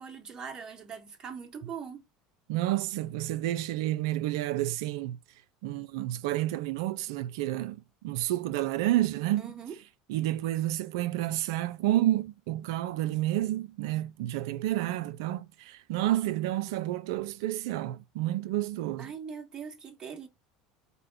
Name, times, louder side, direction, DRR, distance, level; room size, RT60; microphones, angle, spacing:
voice 1, 0.0-2.0 9.4-9.8 19.0-20.3, right 6 dB, 35° right, 1.4 m, -41 dB
voice 2, 2.5-5.2 5.6-9.5 10.1-19.1, right 14 dB, 75° right, 0.3 m, -30 dB
5.1 x 2.1 x 3.3 m
hypercardioid pair, 85°, 2 cm